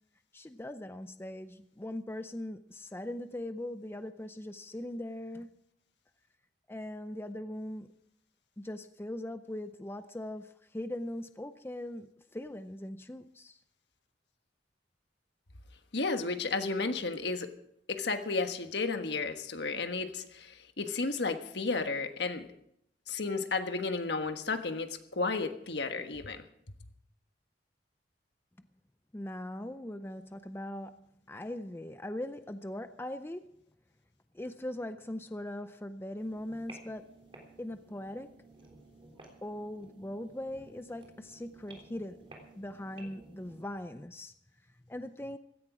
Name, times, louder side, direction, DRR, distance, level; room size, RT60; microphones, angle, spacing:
voice 1, 0.3-5.6 6.7-7.9 8.6-13.6 29.1-33.6 34.3-37.1 37.6-38.4 39.4-44.3 44.9-45.4, left 1 dB, 15° left, 0.5 m, -40 dB
voice 2, 15.9-17.5 17.9-22.5 23.1-26.4, left 3 dB, 65° left, 1.4 m, -33 dB
sound 1, 36.1-43.7, right 2 dB, 30° right, 3.5 m, -55 dB
16.5 x 14.0 x 4.9 m
head